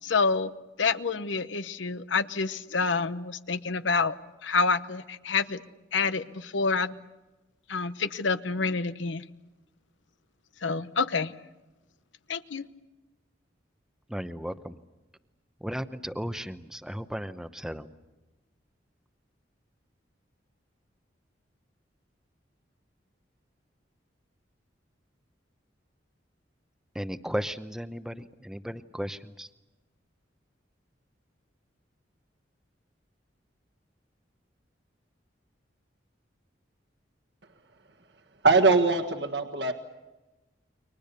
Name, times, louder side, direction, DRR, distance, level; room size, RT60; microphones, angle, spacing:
voice 1, 0.0-0.5 0.8-4.2 4.4-5.6 5.9-6.9 7.7-9.2 10.6-11.3 12.3-12.7, left 4 dB, 85° left, 13 dB, 1.0 m, -27 dB
voice 2, 14.1-14.8 15.6-18.0 26.9-29.5, equal, 5° right, 10 dB, 0.8 m, -35 dB
voice 3, 38.4-39.7, right 3 dB, 65° right, 6 dB, 1.6 m, -21 dB
30.0 x 24.0 x 6.9 m, 1.1 s
head